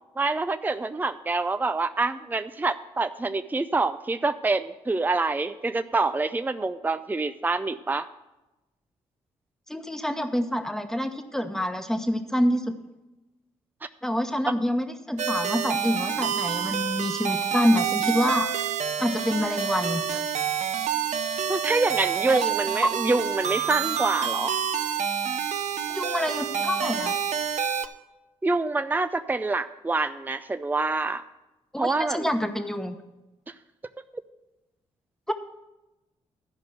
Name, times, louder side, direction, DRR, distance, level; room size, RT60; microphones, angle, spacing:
voice 1, 0.2-8.1 14.5-14.6 21.5-24.5 28.4-31.2 31.8-32.3, right 3 dB, 15° right, 10 dB, 0.5 m, -26 dB
voice 2, 9.7-12.7 14.0-18.5 19.0-20.2 22.4-22.5 22.8-22.9 25.9-27.1 31.7-33.0 35.3-35.4, equal, 5° left, 7 dB, 1.1 m, -26 dB
sound 1, 15.2-27.9, right 8 dB, 60° right, 0.7 m, -28 dB
12.0 x 5.2 x 7.8 m, 1.0 s
hypercardioid pair, 45°, 14 cm